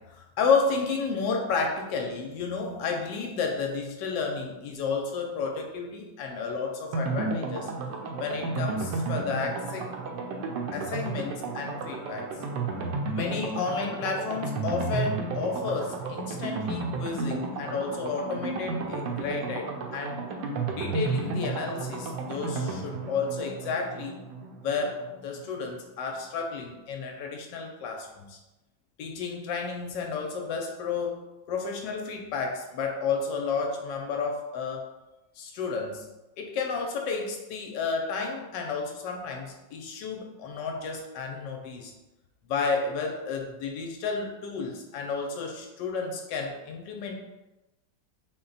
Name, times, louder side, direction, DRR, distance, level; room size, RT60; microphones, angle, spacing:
voice 1, 0.0-7.7 8.2-9.9 10.7-12.4 13.1-20.2 20.7-24.2 24.6-28.4 29.0-34.9 35.4-41.9 42.5-47.2, left 4 dB, 75° left, 2 dB, 1.1 m, -31 dB
sound 1, 6.9-25.5 25.8-25.9 26.2-26.3, right 3 dB, 75° right, 1.1 m, -33 dB
4.2 x 2.2 x 3.9 m, 1.0 s
omnidirectional pair, 2.1 m